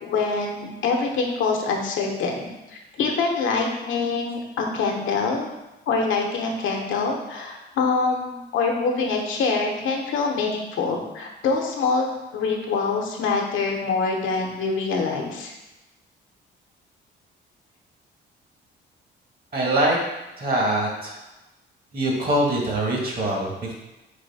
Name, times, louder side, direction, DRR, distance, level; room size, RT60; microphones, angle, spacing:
voice 1, 0.0-5.5 5.9-12.1 12.3-15.5, left 4 dB, 80° left, 1 dB, 0.9 m, -25 dB
voice 2, 19.5-20.0 20.4-21.2 21.9-23.7, right 1 dB, 50° right, -1 dB, 1.4 m, -23 dB
4.1 x 3.1 x 4.1 m, 1.0 s
cardioid pair, 90°, 20 cm